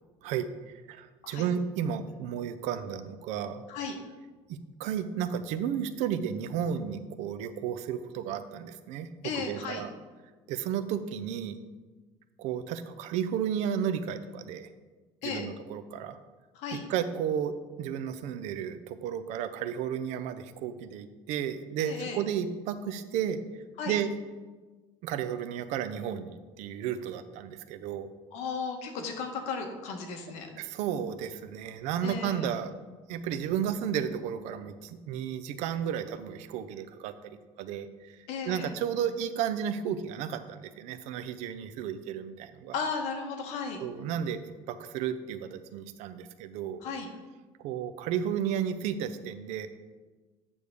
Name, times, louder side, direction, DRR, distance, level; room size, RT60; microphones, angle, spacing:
voice 1, 0.9-3.6 4.5-9.9 10.5-11.6 12.4-14.7 15.2-16.2 16.9-23.4 23.9-24.1 25.0-28.1 30.6-32.7 33.1-38.2 38.5-42.8 43.8-44.4 44.7-46.8 47.6-49.7, right 8 dB, 80° right, 11 dB, 0.6 m, -33 dB
voice 2, 9.2-9.8 15.2-15.4 16.5-16.8 21.8-22.2 23.8-24.0 28.3-30.5 32.0-32.5 38.3-38.7 42.7-43.8 46.8-47.1, left 5 dB, 75° left, 4 dB, 1.2 m, -35 dB
8.4 x 3.5 x 6.4 m, 1.3 s
cardioid pair, 170°, 12 cm